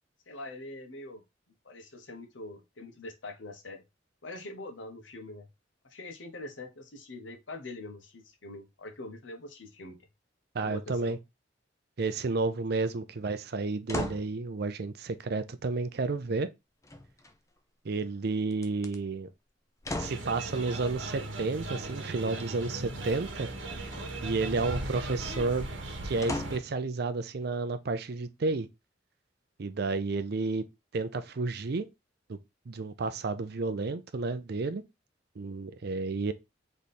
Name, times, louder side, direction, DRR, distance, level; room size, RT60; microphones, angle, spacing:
voice 1, 0.3-1.2 1.6-3.8 4.2-5.5 5.8-10.0 10.6-11.1, left 2 dB, 85° left, 1.0 m, -43 dB
voice 2, 10.5-11.2 12.0-16.5 17.8-19.3 19.9-23.5 24.2-25.7 26.0-28.7 29.6-30.7 30.9-31.9 32.3-32.4 32.7-34.8 35.4-36.3, right 3 dB, 60° right, 0.5 m, -31 dB
sound 1, 13.9-14.3 16.8-17.6 18.5-19.0 19.8-20.3 23.9-24.4 26.2-26.8 27.4-27.5, left 1 dB, 15° left, 0.5 m, -36 dB
sound 2, 20.0-26.6, right 2 dB, 85° right, 1.1 m, -38 dB
3.5 x 3.1 x 4.1 m
head